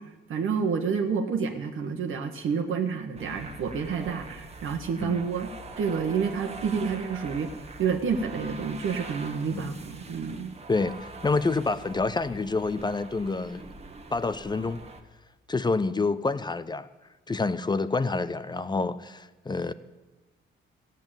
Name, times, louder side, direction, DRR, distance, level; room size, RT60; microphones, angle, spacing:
voice 1, 0.0-5.5 5.8-10.5, right 6 dB, 70° right, 3 dB, 1.4 m, -29 dB
sound 1, 3.2-15.0, right 3 dB, 30° right, 1.5 m, -43 dB
voice 2, 10.7-13.7 14.1-14.8 15.5-16.9 17.3-19.7, left 3 dB, 20° left, 14 dB, 0.6 m, -28 dB
15.0 x 8.3 x 8.9 m, 1.1 s
cardioid pair, 100°, 21 cm